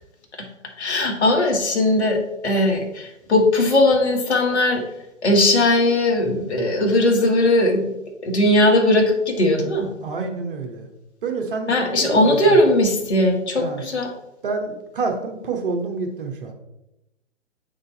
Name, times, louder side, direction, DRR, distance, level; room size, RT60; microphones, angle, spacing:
voice 1, 0.8-4.8 5.2-7.9 8.2-9.9 11.7-14.1, left 1 dB, 60° left, 2 dB, 1.6 m, -18 dB
voice 2, 10.0-10.9 11.2-12.6 13.6-13.8 14.4-16.5, right 4 dB, 45° right, 2 dB, 1.2 m, -28 dB
8.0 x 4.0 x 3.9 m, 0.90 s
figure-of-eight pair, 125°, 38 cm